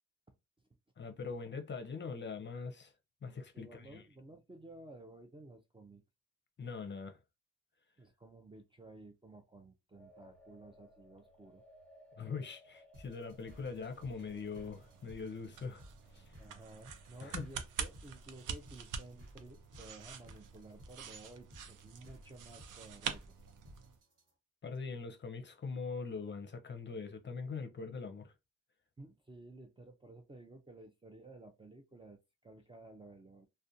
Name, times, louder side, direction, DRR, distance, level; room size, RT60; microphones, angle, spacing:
voice 1, 1.0-2.9 3.2-4.0 6.6-7.2 12.2-15.8 16.1-16.4 17.2-17.5 24.6-28.3, left 5 dB, 35° left, 0.5 m, -42 dB
voice 2, 3.5-6.0 8.0-11.6 16.4-23.3 29.0-33.5, right 2 dB, 15° right, 0.4 m, -54 dB
sound 1, 9.9-19.0, left 1 dB, 5° left, 0.8 m, -64 dB
sound 2, 12.9-24.3, equal, 50° right, 1.3 m, -59 dB
sound 3, 13.2-24.0, right 7 dB, 80° right, 0.5 m, -46 dB
2.4 x 2.2 x 2.7 m
cardioid pair, 80°, 31 cm